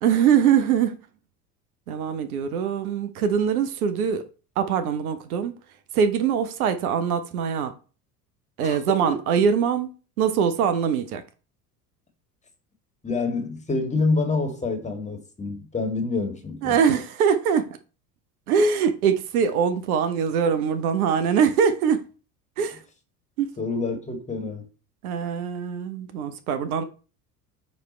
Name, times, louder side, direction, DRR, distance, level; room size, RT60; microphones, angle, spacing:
voice 1, 0.0-1.0 1.9-4.3 4.6-5.5 5.9-7.7 8.6-9.9 10.2-11.2 16.6-17.7 18.5-22.0 22.6-22.8 23.4-23.6 25.0-26.8, right 7 dB, 65° right, 1.0 m, -22 dB
voice 2, 8.6-9.1 13.0-16.8 23.6-24.7, left 3 dB, 15° left, 1.8 m, -27 dB
9.3 x 3.3 x 4.3 m
figure-of-eight pair, 70°, 48 cm